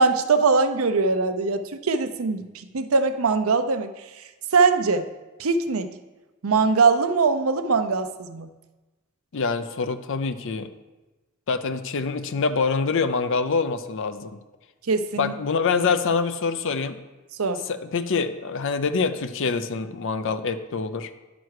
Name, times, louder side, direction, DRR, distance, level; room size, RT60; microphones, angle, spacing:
voice 1, 0.0-4.2 4.5-5.1 5.4-5.9 6.4-8.5 14.9-15.3 17.4-17.6, right 4 dB, 80° right, 9 dB, 0.7 m, -22 dB
voice 2, 9.3-10.7 11.5-14.4 15.2-17.0 17.7-21.1, left 4 dB, 65° left, 10 dB, 0.6 m, -25 dB
10.5 x 6.2 x 4.7 m, 1.1 s
head